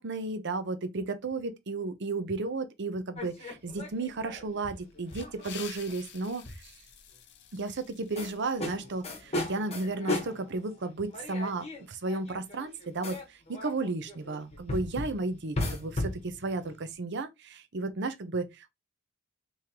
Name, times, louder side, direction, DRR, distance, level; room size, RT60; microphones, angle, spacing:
voice 1, 0.0-6.7 7.5-18.7, right 3 dB, 60° right, 0.7 m, -34 dB
sound 1, 3.1-5.9 6.4-6.6 8.2-16.9, left 1 dB, 30° left, 1.1 m, -37 dB
sound 2, 4.9-9.3, left 9 dB, 55° left, 0.6 m, -49 dB
3.7 x 3.1 x 2.9 m
head